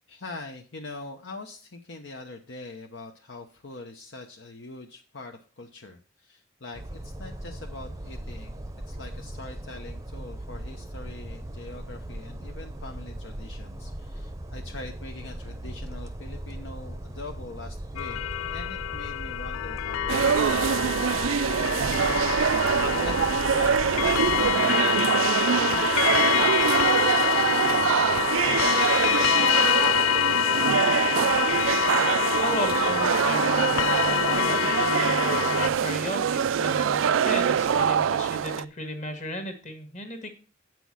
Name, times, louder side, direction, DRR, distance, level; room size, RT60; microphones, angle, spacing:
voice 1, 0.1-8.6 8.9-18.2 18.5-27.6, left 2 dB, 65° left, 3 dB, 0.9 m, -43 dB
sound 1, 6.7-24.5, right 1 dB, 15° right, 0.7 m, -38 dB
sound 2, 18.0-35.7, left 11 dB, 90° left, 0.3 m, -26 dB
sound 3, 20.1-38.6, right 8 dB, 75° right, 0.4 m, -24 dB
voice 2, 32.4-40.3, left 1 dB, 35° left, 6 dB, 1.8 m, -35 dB
8.3 x 6.1 x 6.2 m, 0.37 s
head